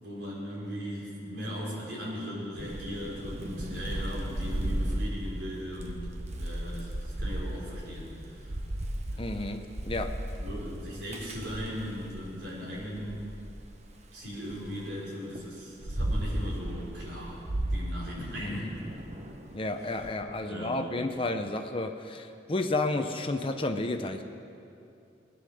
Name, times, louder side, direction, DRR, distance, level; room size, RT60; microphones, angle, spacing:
voice 1, 0.0-6.1 6.4-8.6 9.1-9.2 10.4-13.2 14.1-17.4 17.7-19.0 20.5-20.9, equal, 75° right, -5 dB, 4.9 m, -38 dB
Thunder / Rain, 2.6-12.3 12.7-14.7 15.3-20.1, right 1 dB, 35° right, 1.0 m, -35 dB
voice 2, 9.2-10.1 18.4-18.7 19.5-24.2, left 2 dB, 30° left, 6 dB, 0.8 m, -31 dB
20.0 x 9.6 x 6.6 m, 2.6 s
head